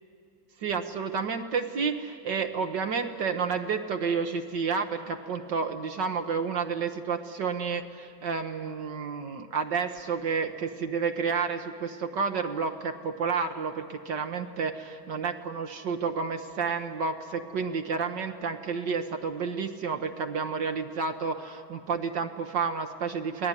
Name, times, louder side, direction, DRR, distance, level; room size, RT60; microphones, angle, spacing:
voice 1, 0.6-23.5, right 5 dB, 65° right, 5 dB, 1.7 m, -30 dB
28.0 x 19.0 x 9.9 m, 2.4 s
omnidirectional pair, 2.2 m